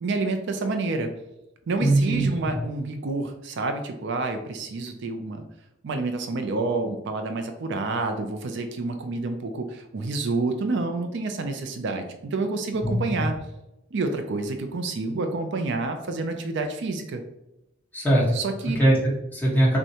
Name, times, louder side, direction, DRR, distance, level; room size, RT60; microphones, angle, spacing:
voice 1, 0.0-1.1 1.7-5.4 5.8-13.4 13.9-17.2 18.3-18.8, right 3 dB, 65° right, 6 dB, 0.4 m, -28 dB
voice 2, 1.8-2.5 12.8-13.2 17.9-18.3 18.8-19.8, right 1 dB, 10° left, -6 dB, 1.3 m, -21 dB
6.1 x 2.2 x 2.8 m, 0.90 s
head